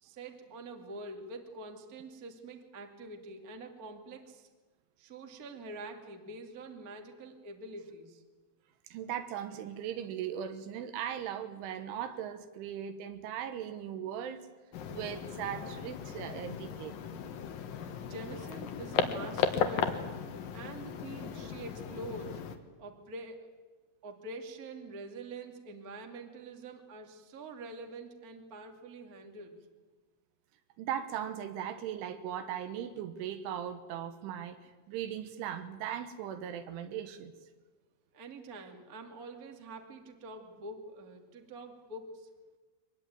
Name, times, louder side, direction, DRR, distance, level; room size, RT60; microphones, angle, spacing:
voice 1, 0.0-4.5 5.0-8.2 18.0-20.2 20.5-22.4 22.8-23.5 24.0-29.6 38.1-42.3, right 2 dB, 45° right, 1.1 m, -45 dB
voice 2, 8.8-14.4 14.9-17.0 30.8-37.3, right 9 dB, 75° right, 3.4 m, -38 dB
sound 1, 14.7-22.6, left 7 dB, 65° left, 2.2 m, -36 dB
24.0 x 19.5 x 9.4 m
omnidirectional pair, 6.0 m